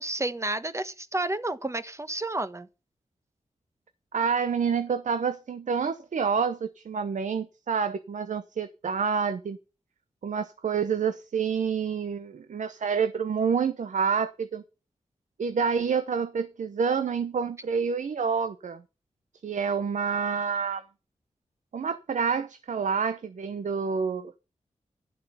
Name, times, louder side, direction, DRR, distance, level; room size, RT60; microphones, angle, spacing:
voice 1, 0.0-2.7, right 2 dB, 20° right, 1.1 m, -31 dB
voice 2, 4.1-9.6 10.2-14.6 15.4-18.8 19.4-20.8 21.7-24.3, right 6 dB, 75° right, 0.8 m, -28 dB
11.0 x 7.6 x 5.5 m
cardioid pair, 70°, 13 cm